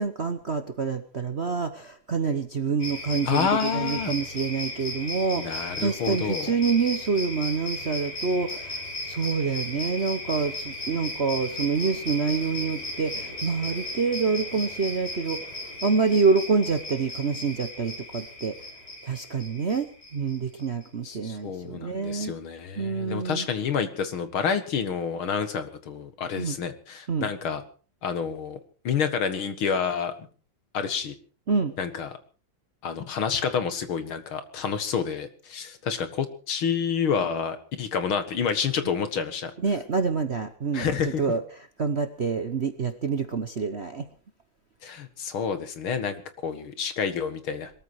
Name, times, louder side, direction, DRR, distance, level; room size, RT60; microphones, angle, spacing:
voice 1, 0.0-15.4 15.8-18.5 19.0-22.3 22.8-23.5 26.4-26.6 27.1-27.3 31.5-31.7 39.6-40.9 41.2-41.4 41.8-44.1, right 5 dB, 45° right, 9 dB, 0.9 m, -27 dB
sound 1, 2.8-20.8, left 1 dB, 40° left, 7.0 m, -36 dB
voice 2, 3.3-4.1 5.4-6.5 21.0-27.6 28.0-28.6 28.8-30.1 30.7-31.1 31.8-32.2 32.8-39.5 40.7-41.4 44.8-47.7, left 6 dB, 75° left, 10 dB, 2.5 m, -29 dB
21.5 x 14.0 x 4.8 m, 0.38 s
omnidirectional pair, 2.3 m